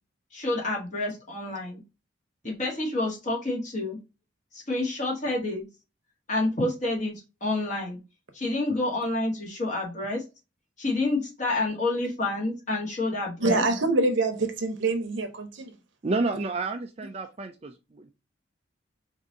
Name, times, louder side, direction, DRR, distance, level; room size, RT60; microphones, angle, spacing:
voice 1, 0.3-1.8 2.4-4.0 4.5-5.7 6.3-8.0 8.3-10.2 10.8-13.6, left 2 dB, 35° left, 1.8 m, -28 dB
voice 2, 13.4-15.7, right 2 dB, 75° right, 0.9 m, -25 dB
voice 3, 16.0-18.1, right 3 dB, 30° right, 0.4 m, -30 dB
4.7 x 2.7 x 3.7 m
head